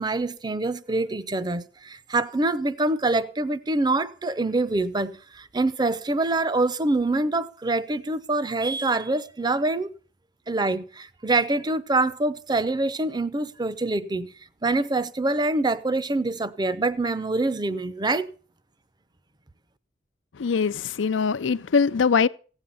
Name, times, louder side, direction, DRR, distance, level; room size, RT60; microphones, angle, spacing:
voice 1, 0.0-9.9 10.5-14.3 14.6-18.3, right 2 dB, 25° right, 0.6 m, -25 dB
voice 2, 20.3-22.3, left 5 dB, 85° left, 0.5 m, -22 dB
15.5 x 8.9 x 5.5 m
head